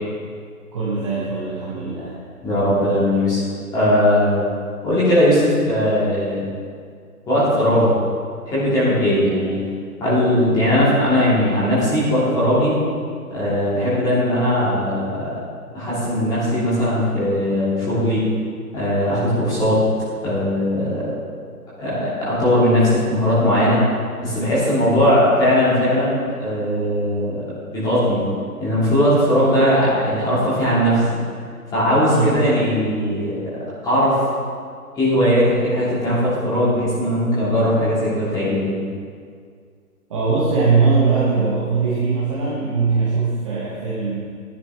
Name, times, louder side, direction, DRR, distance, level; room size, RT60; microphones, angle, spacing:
voice 1, 0.7-2.2 9.0-9.1 24.8-24.9 32.1-32.3 40.1-44.3, right 4 dB, 20° right, -8 dB, 1.3 m, -21 dB
voice 2, 2.4-3.4 3.7-4.4 4.8-6.5 7.3-7.9 8.5-9.6 10.0-12.7 13.3-15.3 15.7-18.2 18.7-19.8 20.2-21.1 21.8-23.8 24.2-27.4 27.7-28.2 28.6-31.0 31.7-33.4 33.8-34.2 34.9-38.8, equal, 10° left, -10 dB, 2.7 m, -19 dB
14.5 x 10.5 x 3.5 m, 2.1 s
figure-of-eight pair, 155°, 46 cm